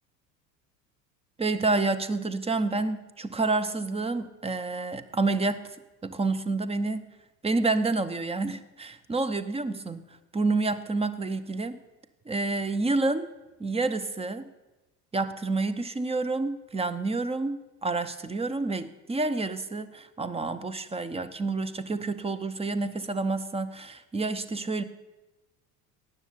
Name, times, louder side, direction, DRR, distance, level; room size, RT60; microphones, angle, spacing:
voice 1, 1.4-5.7 6.0-7.1 7.4-10.0 10.3-11.8 12.3-13.3 13.6-14.5 15.1-24.8, right 3 dB, 10° right, 13 dB, 0.8 m, -29 dB
18.0 x 6.7 x 8.6 m, 1.1 s
figure-of-eight pair, 75°, 48 cm